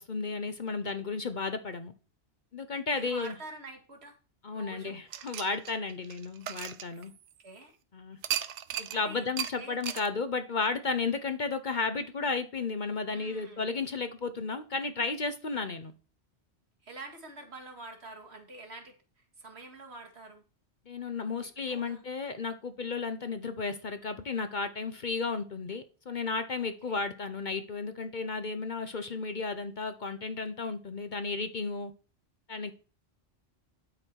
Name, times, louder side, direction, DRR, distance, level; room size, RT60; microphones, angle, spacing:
voice 1, 0.0-1.9 2.5-3.4 4.4-7.1 7.9-8.2 8.8-15.9 20.9-31.9 32.5-32.7, left 4 dB, 45° left, 10 dB, 0.9 m, -33 dB
voice 2, 2.9-4.2 4.5-5.0 7.4-7.7 8.9-9.2 9.6-9.8 13.1-13.7 16.8-19.0 19.4-20.4 21.7-22.0 26.8-27.0, right 2 dB, 65° right, 3 dB, 2.1 m, -46 dB
sound 1, 5.1-7.5 8.2-9.0 9.4-9.5 9.8-10.1, right 10 dB, 80° right, 1.0 m, -36 dB
11.0 x 5.9 x 4.6 m, 0.35 s
omnidirectional pair, 1.2 m